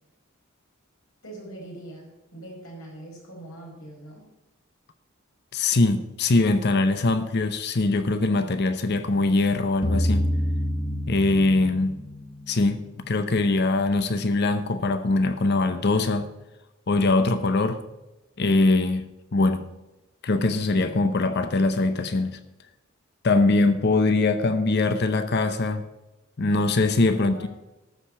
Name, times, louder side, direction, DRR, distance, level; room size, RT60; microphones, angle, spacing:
voice 1, 1.2-4.3 27.1-27.5, right 1 dB, 85° left, 5.0 m, -42 dB
voice 2, 5.5-10.3 11.1-12.0 12.5-16.3 16.9-17.8 18.4-19.7 20.2-22.4 23.2-25.8 26.4-27.5, left 2 dB, 55° left, 0.7 m, -22 dB
sound 1, 9.8-12.9, equal, 20° left, 1.1 m, -27 dB
13.0 x 5.0 x 8.5 m
head